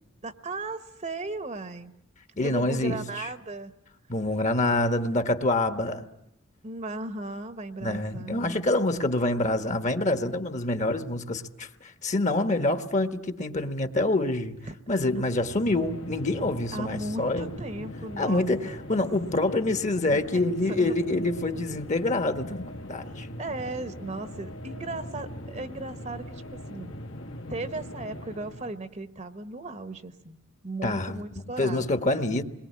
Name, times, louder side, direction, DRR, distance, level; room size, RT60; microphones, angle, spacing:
voice 1, 0.2-1.9 2.4-3.7 5.8-6.1 6.6-8.7 14.6-14.7 16.7-18.7 20.1-20.9 23.4-27.0 27.5-31.9, right 2 dB, 35° right, 1.0 m, -37 dB
voice 2, 2.4-3.0 4.1-6.0 7.8-14.6 14.9-17.5 18.2-23.3 30.8-32.4, left 2 dB, 35° left, 1.2 m, -26 dB
sound 1, 15.0-28.8, left 1 dB, 75° left, 1.7 m, -41 dB
27.5 x 22.0 x 8.4 m
head